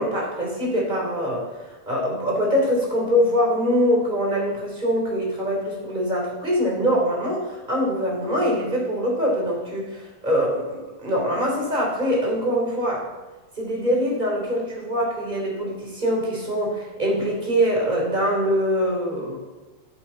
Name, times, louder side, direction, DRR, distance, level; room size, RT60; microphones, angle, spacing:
voice 1, 0.0-1.5 1.9-13.1 13.6-19.4, equal, 15° right, -2 dB, 2.8 m, -23 dB
17.0 x 7.2 x 4.2 m, 1.2 s
omnidirectional pair, 3.9 m